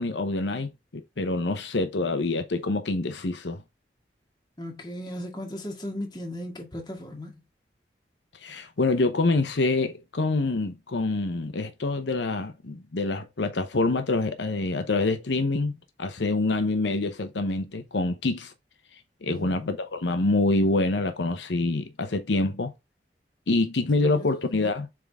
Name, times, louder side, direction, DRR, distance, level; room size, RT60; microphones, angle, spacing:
voice 1, 0.0-3.6 8.4-18.5 19.2-22.7 23.5-24.9, left 2 dB, 85° left, 0.8 m, -26 dB
voice 2, 4.6-7.4 19.3-19.7 24.0-24.3, left 1 dB, 25° left, 2.0 m, -36 dB
7.6 x 3.7 x 3.5 m
head